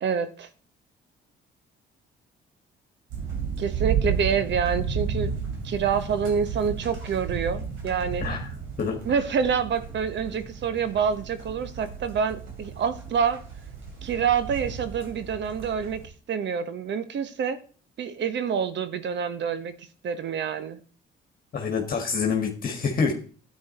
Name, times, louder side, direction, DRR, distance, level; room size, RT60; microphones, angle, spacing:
voice 1, 0.0-0.5 3.6-5.3 5.6-8.2 9.0-13.4 14.0-16.0 16.3-17.6 18.0-19.7 20.0-20.8, right 7 dB, 65° right, 1.1 m, -27 dB
sound 1, 3.1-16.1, right 6 dB, 80° right, 3.4 m, -33 dB
voice 2, 21.5-23.1, left 5 dB, 45° left, 1.7 m, -26 dB
10.0 x 8.7 x 4.2 m
cardioid pair, 90°, 20 cm